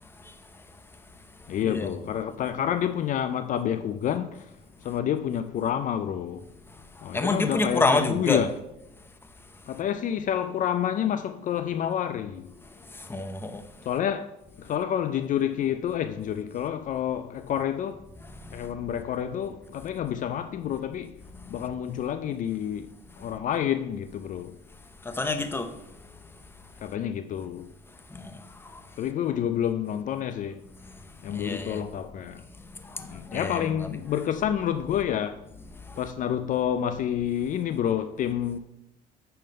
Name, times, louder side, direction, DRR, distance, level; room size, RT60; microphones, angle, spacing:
voice 1, 1.5-4.5 4.8-6.4 7.0-8.5 9.7-12.5 13.9-14.3 14.6-18.0 18.5-21.1 21.5-22.9 23.2-24.6 26.8-27.7 29.0-30.6 31.2-32.4 33.0-35.4 36.0-38.6, left 10 dB, 50° left, 0.4 m, -28 dB
voice 2, 7.1-8.4 13.1-13.6 18.5-18.6 25.0-25.7 28.1-28.3 31.3-31.8 32.9-33.1 33.3-33.7, left 2 dB, 15° left, 0.8 m, -27 dB
9.2 x 3.8 x 5.5 m
cardioid pair, 110°, 17 cm